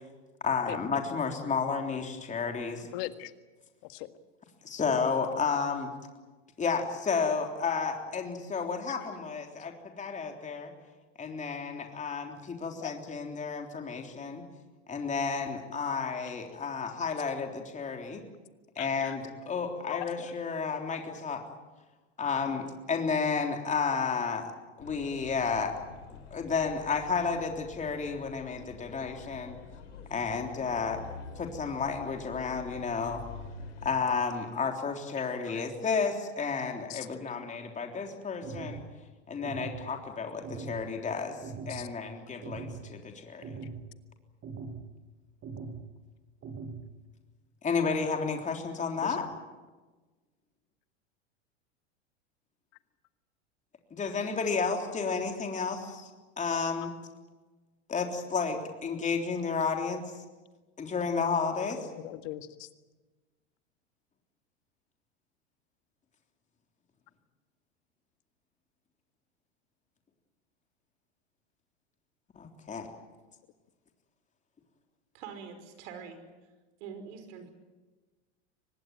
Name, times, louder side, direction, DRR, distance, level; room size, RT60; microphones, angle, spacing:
voice 1, 0.4-2.9 4.6-5.9 6.6-10.7 11.2-14.4 14.9-18.2 18.8-21.4 22.2-24.5 24.8-25.7 26.1-29.6 30.1-31.0 31.4-33.2 33.8-38.8 39.3-41.4 41.7-43.6 47.6-49.2 53.9-56.1 56.4-56.9 57.9-60.2 60.8-61.9 72.4-72.9, left 5 dB, 20° left, 3 dB, 3.6 m, -32 dB
voice 2, 2.8-3.3 3.8-4.1 9.0-9.1 12.8-12.9 18.8-19.2 19.9-20.3 35.5-35.6 36.9-37.1 41.7-41.9 49.0-49.3 61.8-62.7, left 16 dB, 55° left, 10 dB, 1.8 m, -40 dB
sound 1, 24.8-33.9, left 5 dB, 80° left, 4.2 m, -47 dB
sound 2, 38.4-38.8 39.4-39.8 40.4-40.8 41.4-41.8 42.4-42.8 43.4-43.8 44.4-44.8 45.4-45.8 46.4-46.8, right 4 dB, 35° right, 6.3 m, -40 dB
voice 3, 75.1-76.2 76.8-77.5, right 6 dB, 65° right, 8 dB, 5.4 m, -44 dB
25.0 x 19.5 x 9.3 m, 1.2 s
hypercardioid pair, 105°, 35 cm